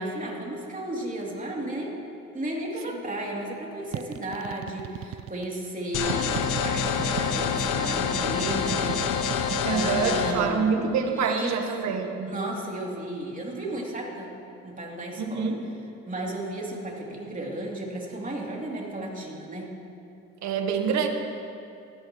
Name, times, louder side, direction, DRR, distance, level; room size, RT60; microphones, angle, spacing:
voice 1, 0.0-1.9 2.3-10.7 11.2-12.0 12.3-14.3 14.6-15.5 16.1-19.7, right 1 dB, 25° right, -2 dB, 3.0 m, -34 dB
sound 1, 3.9-5.5 6.1-7.8 8.5-9.6, right 12 dB, 50° right, 0.4 m, -35 dB
sound 2, 5.9-10.3, left 6 dB, 80° left, 0.9 m, -27 dB
voice 2, 9.6-12.3 15.2-15.6 20.4-21.1, right 5 dB, 65° right, 5 dB, 1.4 m, -26 dB
18.0 x 13.0 x 3.1 m, 2.7 s
supercardioid pair, 75°, 30 cm